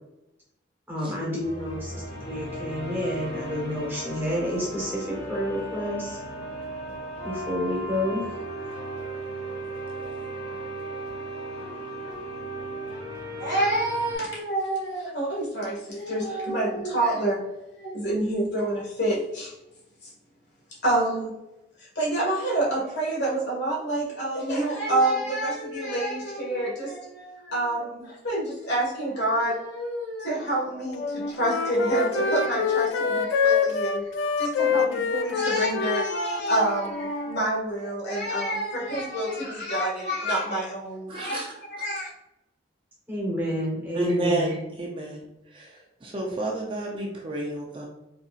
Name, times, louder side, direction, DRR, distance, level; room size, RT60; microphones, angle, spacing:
voice 1, 0.9-6.2 7.2-8.2 43.1-44.5, equal, 10° right, -5 dB, 1.0 m, -29 dB
sound 1, 1.4-14.2, right 1 dB, 15° left, 1.2 m, -36 dB
voice 2, 13.4-19.5 20.0-20.1 20.8-21.4 21.8-34.1 34.4-41.4 41.8-42.1, right 1 dB, 65° left, -5 dB, 1.4 m, -27 dB
Wind instrument woodwind instrument, 31.0-37.4, left 6 dB, 85° left, 0.3 m, -26 dB
voice 3, 41.1-41.5 43.9-45.2 45.5-47.9, right 2 dB, 25° right, -2 dB, 0.5 m, -30 dB
3.9 x 2.6 x 2.4 m, 0.91 s
head